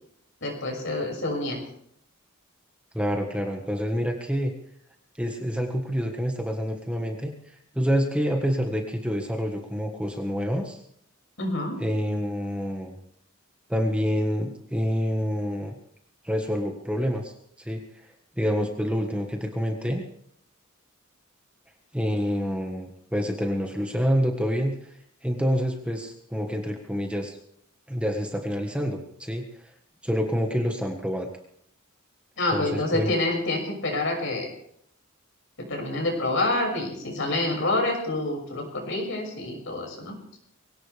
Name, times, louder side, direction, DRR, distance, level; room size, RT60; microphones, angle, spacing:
voice 1, 0.4-1.6 11.4-11.8 32.4-34.5 35.6-40.1, left 2 dB, 60° left, 2 dB, 6.4 m, -27 dB
voice 2, 2.9-4.5 5.2-7.3 7.7-10.8 11.8-13.0 13.7-15.7 16.2-17.3 17.6-17.8 18.4-20.0 21.9-24.8 25.2-27.4 27.9-29.4 30.0-31.3 32.5-33.1, equal, 5° right, 2 dB, 1.5 m, -27 dB
22.5 x 17.5 x 3.5 m, 0.70 s
head